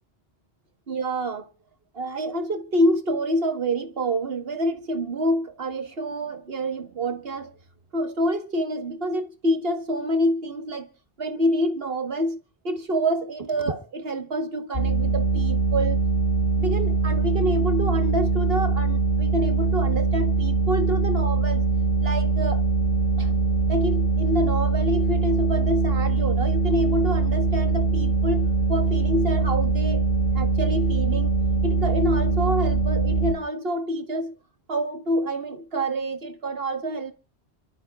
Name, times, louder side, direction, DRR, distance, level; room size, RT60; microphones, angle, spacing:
voice 1, 0.9-1.5 1.9-7.5 7.9-10.9 11.2-12.4 12.6-16.0 16.6-21.6 22.0-22.6 23.2-23.3 23.7-30.1 30.3-31.3 31.6-34.3 34.7-37.1, equal, 60° right, 1.8 m, -27 dB
sound 1, 14.7-33.3, right 4 dB, 45° left, 3.2 m, -22 dB
28.0 x 13.0 x 2.4 m
omnidirectional pair, 1.1 m